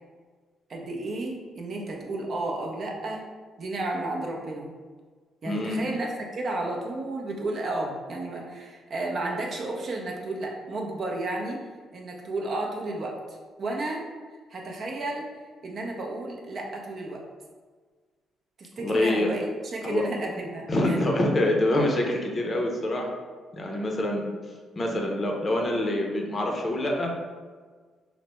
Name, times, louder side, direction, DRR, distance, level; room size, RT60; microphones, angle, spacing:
voice 1, 0.7-3.2 3.6-4.7 5.4-11.6 11.9-13.1 13.6-14.0 14.5-15.3 15.6-17.2 18.6-21.0, right 2 dB, 50° right, 0 dB, 0.5 m, -32 dB
voice 2, 5.4-5.8 18.8-19.3 19.8-20.0 20.7-23.1 23.5-24.2 24.8-27.1, left 1 dB, 35° left, 1 dB, 0.5 m, -25 dB
3.2 x 2.0 x 3.0 m, 1.5 s
cardioid pair, 90°, 0 cm